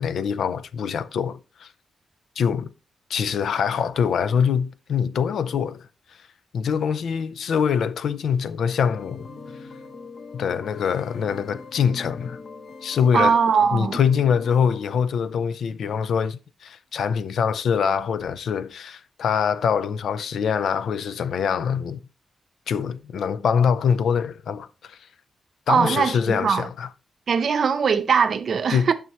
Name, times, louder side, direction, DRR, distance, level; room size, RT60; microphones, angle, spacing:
voice 1, 0.0-1.7 2.4-2.7 3.1-5.9 6.5-9.3 10.3-12.4 12.8-13.3 13.7-22.0 22.7-25.0 25.7-26.9 28.7-28.9, left 7 dB, 75° left, 0.5 m, -24 dB
sound 1, 8.8-14.7, left 4 dB, 40° left, 0.7 m, -41 dB
voice 2, 13.1-14.0 25.7-26.7 27.3-28.9, right 6 dB, 50° right, 0.7 m, -21 dB
9.3 x 6.2 x 3.0 m
wide cardioid pair, 175°, 0 cm